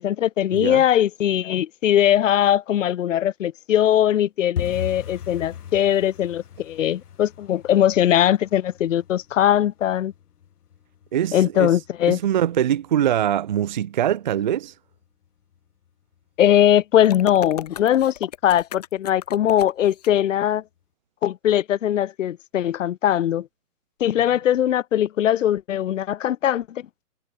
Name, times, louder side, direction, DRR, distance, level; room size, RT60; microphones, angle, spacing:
voice 1, 0.0-10.1 11.3-12.2 16.4-20.6 21.2-23.5 24.0-26.8, left 11 dB, 55° left, 0.8 m, -20 dB
voice 2, 0.5-0.8 11.1-11.8 12.1-14.7, right 10 dB, 30° right, 0.8 m, -23 dB
sound 1, 4.6-15.3 15.5-16.2 16.5-16.8 17.0-17.4 17.7-17.8 18.3-18.9 19.2-19.3 19.8-19.9, left 9 dB, 85° left, 2.6 m, -39 dB
sound 2, 17.0-20.1, left 11 dB, 25° left, 0.8 m, -35 dB
hypercardioid pair, 175°, 44 cm